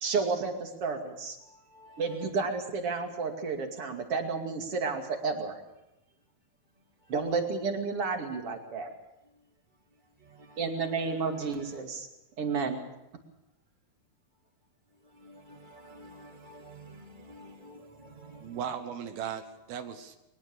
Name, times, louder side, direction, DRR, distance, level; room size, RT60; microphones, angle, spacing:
voice 1, 0.0-1.4 2.0-5.6 7.1-8.9 10.6-12.1 12.4-12.8, right 4 dB, 40° right, 4 dB, 3.1 m, -31 dB
voice 2, 1.4-2.3 7.0-7.1 9.9-11.8 15.0-18.7, right 1 dB, 10° right, 0 dB, 3.4 m, -52 dB
voice 3, 18.4-20.2, right 8 dB, 80° right, 8 dB, 3.1 m, -37 dB
22.0 x 20.0 x 6.7 m, 0.90 s
omnidirectional pair, 4.3 m